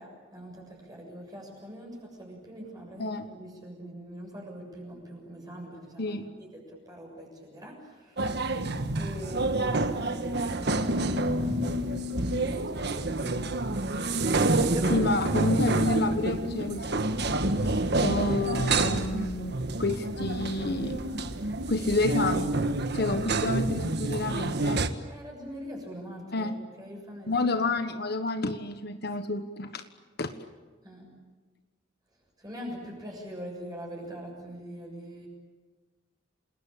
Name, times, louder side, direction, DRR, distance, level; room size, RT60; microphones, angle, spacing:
voice 1, 0.0-8.4 9.0-15.0 25.1-27.6 30.8-31.1 32.4-35.3, equal, 20° right, -1 dB, 7.0 m, -43 dB
sound 1, 8.2-24.9, right 2 dB, 60° right, 1.5 m, -28 dB
voice 2, 14.9-17.0 17.6-21.0 21.7-22.5 22.9-24.9 26.3-26.6 27.3-29.8 30.2-30.3, left 2 dB, 55° left, 9 dB, 1.4 m, -29 dB
29.5 x 20.0 x 8.8 m, 1.4 s
head